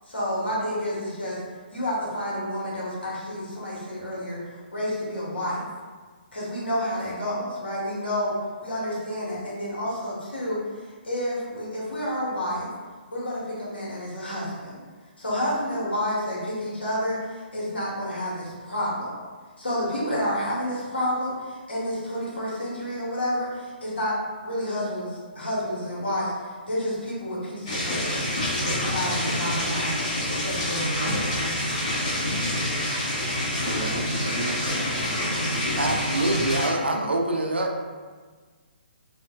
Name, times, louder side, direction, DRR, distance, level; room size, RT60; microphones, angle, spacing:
voice 1, 0.1-1.4 1.7-5.7 6.3-12.7 13.1-14.8 15.2-19.1 19.6-28.3 28.6-30.0 30.3-31.4, equal, 70° left, -6 dB, 1.0 m, -30 dB
sound 1, 27.7-36.7, left 1 dB, 35° left, 1.1 m, -27 dB
voice 2, 33.6-34.6 34.9-35.7, right 2 dB, 15° right, -7 dB, 0.6 m, -36 dB
voice 3, 35.8-37.7, right 2 dB, 75° right, 2 dB, 0.4 m, -25 dB
3.1 x 2.1 x 2.2 m, 1.5 s
figure-of-eight pair, 135°, 6 cm